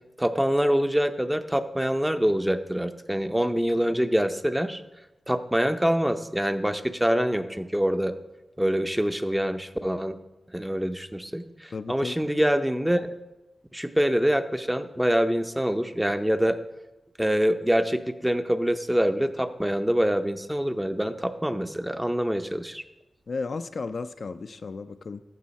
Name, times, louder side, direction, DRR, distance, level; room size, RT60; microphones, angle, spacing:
voice 1, 0.2-4.8 5.3-8.1 8.6-10.2 10.5-13.0 13.7-16.6 17.2-22.8, equal, 5° right, 9 dB, 0.6 m, -25 dB
voice 2, 11.7-12.1 23.3-25.2, left 4 dB, 65° left, 10 dB, 0.4 m, -34 dB
13.5 x 5.5 x 4.2 m, 1.0 s
cardioid pair, 65°, 0 cm